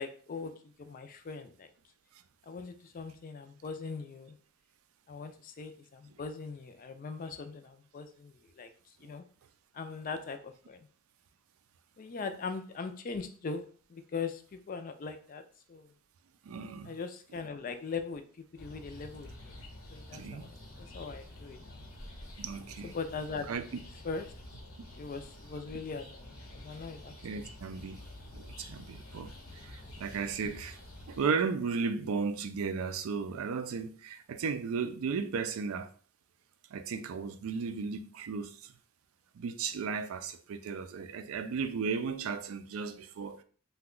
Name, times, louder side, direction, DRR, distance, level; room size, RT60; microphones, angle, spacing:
voice 1, 0.0-1.7 2.4-4.4 5.1-8.7 9.0-9.2 9.7-10.9 12.0-13.6 13.9-15.4 15.7-15.9 16.8-18.2 18.5-19.6 19.9-21.8 22.8-23.5 24.0-24.3 25.0-27.1 29.5-29.9, left 4 dB, 40° left, 0.3 m, -40 dB
voice 2, 16.4-16.9 20.1-20.5 22.4-22.9 23.5-23.6 27.2-28.0 28.3-30.8 31.1-35.9 36.7-38.7 39.3-43.4, right 5 dB, 80° right, 0.4 m, -35 dB
sound 1, 18.5-31.2, left 1 dB, 85° left, 0.9 m, -49 dB
2.9 x 2.2 x 3.7 m
head